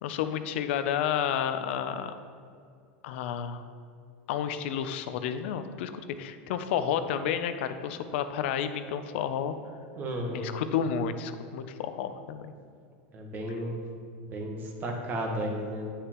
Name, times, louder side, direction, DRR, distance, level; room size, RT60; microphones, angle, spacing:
voice 1, 0.0-2.1 3.0-3.6 4.3-5.9 6.2-9.5 10.3-12.5, left 8 dB, 75° left, 10 dB, 0.5 m, -31 dB
voice 2, 10.0-10.6 13.1-13.7 14.2-15.9, equal, 30° right, 1 dB, 1.3 m, -33 dB
9.3 x 6.6 x 3.0 m, 2.3 s
supercardioid pair, 135°, 6 cm